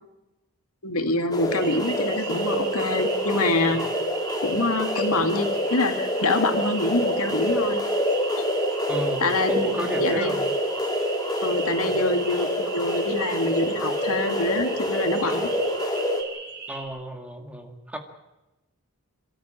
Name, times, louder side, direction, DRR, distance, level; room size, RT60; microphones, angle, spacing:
voice 1, 0.8-3.8 4.4-7.8 9.2-10.3 11.4-15.5, left 2 dB, 75° left, 6 dB, 2.2 m, -26 dB
sound 1, 1.3-16.2, equal, 20° left, 2.7 m, -27 dB
sound 2, 1.5-16.8, right 5 dB, 45° right, 6.9 m, -38 dB
voice 2, 8.9-9.2 9.5-10.5 16.7-18.0, equal, 5° right, 4 dB, 2.0 m, -32 dB
28.0 x 13.5 x 9.0 m, 0.99 s
head